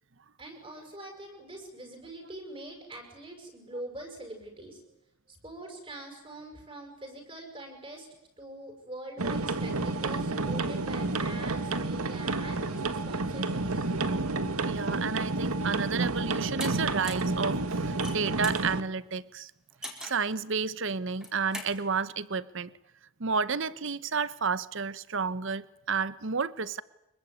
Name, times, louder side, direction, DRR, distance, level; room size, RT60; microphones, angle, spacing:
voice 1, 0.4-4.8 5.3-8.1 8.4-13.9, right 1 dB, 25° right, 6.3 m, -44 dB
sound 1, 9.2-18.8, right 3 dB, 90° right, 1.8 m, -30 dB
voice 2, 14.6-19.5 20.0-22.7 23.2-26.8, right 5 dB, 60° right, 0.9 m, -31 dB
sound 2, 16.6-16.7 17.0-17.3 17.9-18.6 19.8-20.3 21.1-21.7, equal, 5° right, 4.1 m, -39 dB
25.5 x 22.5 x 9.6 m
head